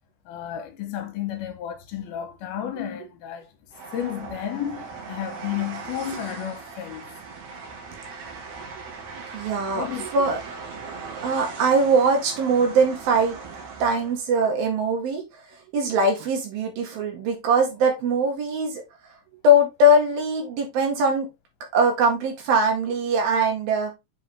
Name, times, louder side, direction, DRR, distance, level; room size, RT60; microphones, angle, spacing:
voice 1, 0.3-3.5 3.9-7.1 9.7-10.1, left 10 dB, 80° left, 2.9 m, -32 dB
Train, 3.7-14.2, right 4 dB, 55° right, 2.5 m, -39 dB
voice 2, 9.3-9.8 10.1-10.4 11.2-13.4 13.8-15.2 15.7-18.8 19.4-21.3 21.7-23.9, right 1 dB, 70° right, 3.6 m, -21 dB
7.6 x 4.7 x 3.3 m
omnidirectional pair, 4.4 m